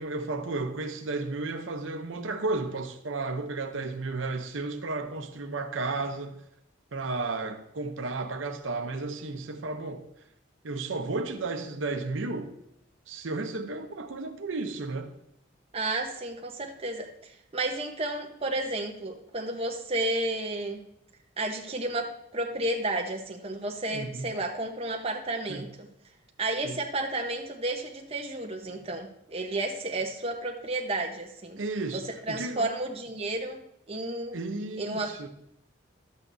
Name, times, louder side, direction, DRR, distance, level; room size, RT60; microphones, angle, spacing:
voice 1, 0.0-6.4 6.9-10.0 10.6-12.5 13.1-15.1 23.9-24.3 25.5-25.6 26.6-26.8 31.6-32.7 34.3-35.3, right 3 dB, 80° right, 0.8 m, -33 dB
voice 2, 15.7-20.8 21.4-25.9 26.4-31.6 31.9-34.4 34.8-35.3, right 2 dB, 30° right, 1.0 m, -32 dB
12.5 x 8.1 x 2.7 m
head